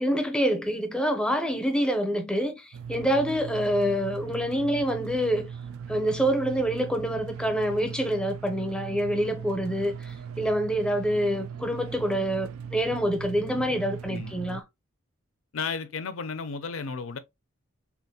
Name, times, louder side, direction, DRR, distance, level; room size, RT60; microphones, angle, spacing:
voice 1, 0.0-5.5 5.9-14.6, equal, 5° left, 0.5 m, -26 dB
sound 1, 2.7-14.6, right 7 dB, 85° right, 0.3 m, -39 dB
voice 2, 15.5-17.2, left 5 dB, 85° left, 0.5 m, -33 dB
3.4 x 2.5 x 2.7 m
head